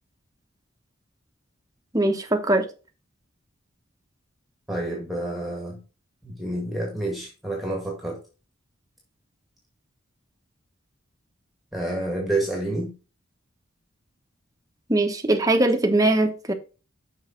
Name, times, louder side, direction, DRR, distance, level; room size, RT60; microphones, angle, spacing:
voice 1, 1.9-2.6 14.9-16.5, right 2 dB, 20° right, 1.1 m, -21 dB
voice 2, 4.7-5.8 6.2-8.2 11.7-12.9, right 1 dB, ahead, 1.8 m, -28 dB
6.4 x 5.5 x 4.5 m
head